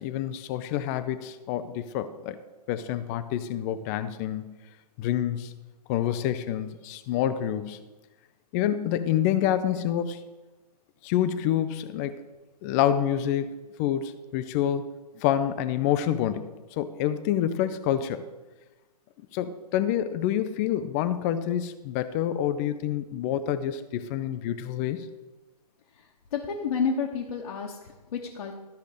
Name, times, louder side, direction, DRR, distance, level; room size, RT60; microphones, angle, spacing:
voice 1, 0.0-2.4 2.7-4.5 5.0-5.5 5.9-7.8 8.5-10.2 11.0-12.2 12.6-13.5 13.8-14.9 15.2-18.2 19.3-25.1, left 10 dB, 25° left, 12 dB, 0.4 m, -27 dB
voice 2, 25.9-28.5, left 6 dB, 60° left, -1 dB, 1.2 m, -31 dB
13.0 x 5.1 x 5.0 m, 1.1 s
figure-of-eight pair, 125°, 21 cm